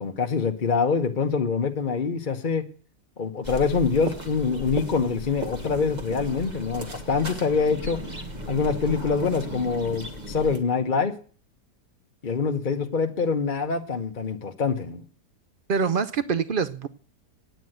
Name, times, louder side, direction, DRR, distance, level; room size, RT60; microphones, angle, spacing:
voice 1, 0.0-2.6 3.2-8.0 8.5-11.1 12.2-15.0, left 5 dB, 35° left, 4 dB, 1.0 m, -25 dB
sound 1, 3.4-10.6, right 1 dB, 25° right, 1.5 m, -36 dB
voice 2, 15.7-16.9, right 5 dB, 80° right, 13 dB, 0.4 m, -25 dB
9.3 x 9.1 x 7.8 m, 0.42 s
omnidirectional pair, 1.8 m